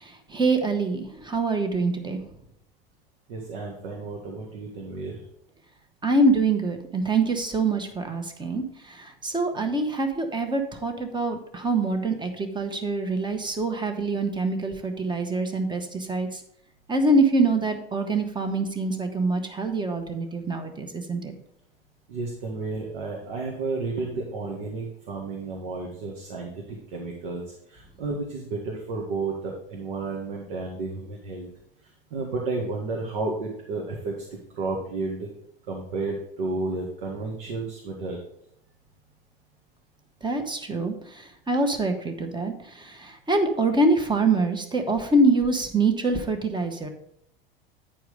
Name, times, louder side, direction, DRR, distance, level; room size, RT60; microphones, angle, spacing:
voice 1, 0.0-2.2 6.0-16.4 16.9-21.3 40.2-46.9, right 2 dB, 15° right, 6 dB, 1.5 m, -25 dB
voice 2, 3.3-5.2 22.1-27.4 27.7-31.5 32.1-34.1 34.6-35.3 35.7-38.2, right 3 dB, 65° right, -1 dB, 1.9 m, -32 dB
9.8 x 4.7 x 5.3 m, 0.74 s
hypercardioid pair, 80°, 29 cm